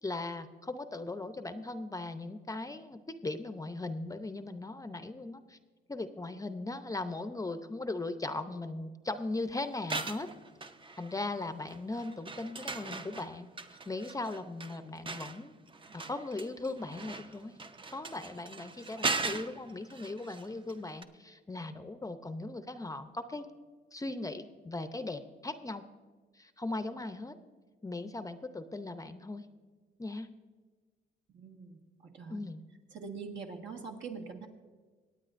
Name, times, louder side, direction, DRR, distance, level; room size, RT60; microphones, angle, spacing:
voice 1, 0.0-5.6 5.9-10.3 11.0-13.5 13.9-15.5 15.9-17.6 17.9-23.5 23.9-25.8 26.3-27.3 27.8-29.5 30.0-30.3 32.3-32.6, left 2 dB, 15° left, 10 dB, 0.6 m, -38 dB
sound 1, 9.7-11.3 11.7-20.7 21.0-21.1, right 3 dB, 25° right, 0.6 m, -39 dB
voice 2, 31.3-31.8 32.1-32.4 32.9-34.5, right 5 dB, 70° right, 2 dB, 1.8 m, -43 dB
24.0 x 9.0 x 2.5 m, 1.4 s
cardioid pair, 90°, 20 cm